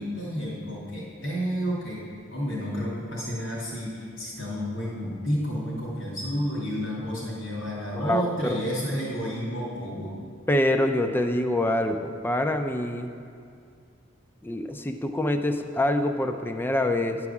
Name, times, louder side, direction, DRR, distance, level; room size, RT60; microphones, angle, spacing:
voice 1, 0.0-2.0 2.3-10.2, equal, 75° left, -7 dB, 2.7 m, -31 dB
voice 2, 7.9-8.6 10.5-13.1 14.4-17.2, left 1 dB, 10° left, 7 dB, 0.4 m, -25 dB
10.5 x 4.8 x 7.1 m, 2.4 s
head